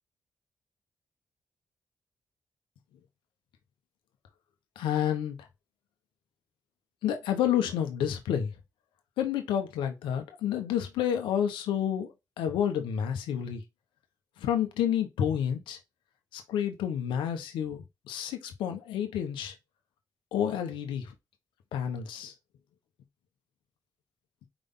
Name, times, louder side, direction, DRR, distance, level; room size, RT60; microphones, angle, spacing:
voice 1, 4.8-5.4 7.0-8.5 9.2-13.6 14.4-15.8 16.3-19.5 20.3-21.1 21.7-22.3, left 9 dB, 90° left, 1.0 m, -30 dB
5.0 x 3.5 x 5.6 m
supercardioid pair, 45°, 8 cm